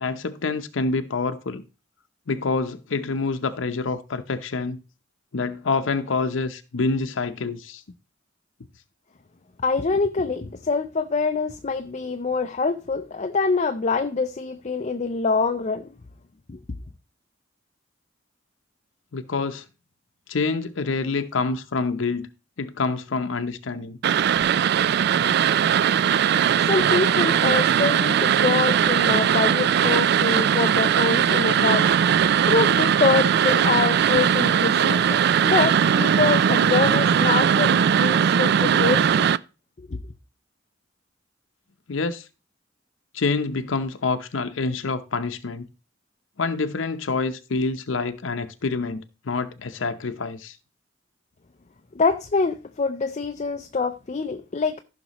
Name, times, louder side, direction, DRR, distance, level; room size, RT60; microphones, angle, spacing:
voice 1, 0.0-1.6 2.3-4.8 5.3-7.8 19.1-19.6 20.3-22.3 22.6-24.0 41.9-42.3 43.1-45.7 46.4-50.6, left 4 dB, 85° left, 0.7 m, -27 dB
voice 2, 9.6-15.9 16.5-16.6 26.6-31.9 32.5-39.2 51.9-54.8, left 4 dB, 40° left, 0.5 m, -25 dB
sound 1, 24.0-39.4, right 8 dB, 60° right, 0.3 m, -19 dB
15.0 x 5.9 x 3.0 m
head